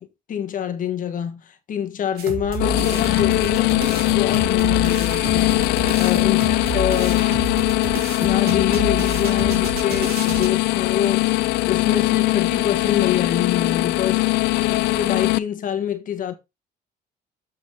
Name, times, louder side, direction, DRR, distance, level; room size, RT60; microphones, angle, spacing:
voice 1, 0.3-5.5 6.0-7.3 8.2-14.3 14.7-16.3, left 9 dB, 50° left, 1.3 m, -26 dB
sound 1, 2.2-10.5, right 3 dB, 70° right, 2.2 m, -29 dB
sound 2, 2.6-15.4, left 21 dB, 85° left, 0.4 m, -21 dB
7.5 x 6.3 x 3.7 m
cardioid pair, 110°, 17 cm